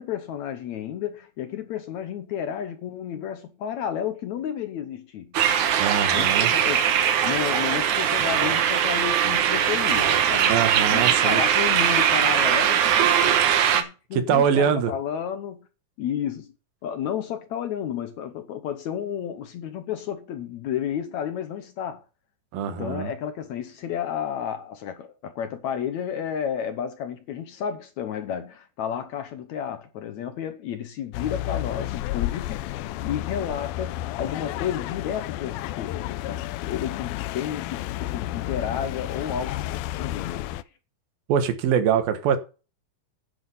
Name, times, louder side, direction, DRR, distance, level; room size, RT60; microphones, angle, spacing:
voice 1, 0.0-5.3 6.1-10.6 10.9-12.9 13.2-13.4 13.7-15.7 16.0-16.5 16.8-22.0 22.7-32.6 33.0-39.6 39.9-40.6, left 9 dB, 70° left, 1.9 m, -32 dB
sound 1, 5.3-13.8, right 9 dB, 65° right, 2.4 m, -21 dB
voice 2, 5.8-6.5 10.5-11.4 14.1-14.9 22.5-23.1 41.3-42.4, right 8 dB, 80° right, 3.2 m, -23 dB
sound 2, 31.1-40.6, left 15 dB, 90° left, 2.5 m, -31 dB
10.5 x 7.5 x 5.7 m
omnidirectional pair, 4.1 m